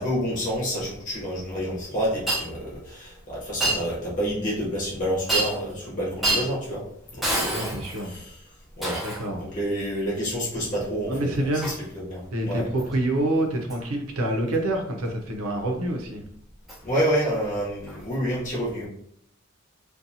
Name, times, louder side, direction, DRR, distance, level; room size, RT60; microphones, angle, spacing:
voice 1, 0.0-6.8 7.1-8.4 8.8-9.0 9.4-12.7 16.8-18.9, equal, 35° left, -6 dB, 0.9 m, -28 dB
Shatter, 2.3-2.5 3.6-3.8 5.3-5.7 6.2-6.5 7.2-8.1 8.8-9.3 11.6-11.8 12.8-12.9 13.7-13.8 16.7-16.8 17.9-18.0, right 1 dB, ahead, 0.6 m, -26 dB
voice 2, 7.5-8.1 9.0-9.4 11.1-11.7 12.3-16.2, right 1 dB, 85° right, 3 dB, 0.6 m, -27 dB
2.6 x 2.2 x 2.7 m, 0.68 s
head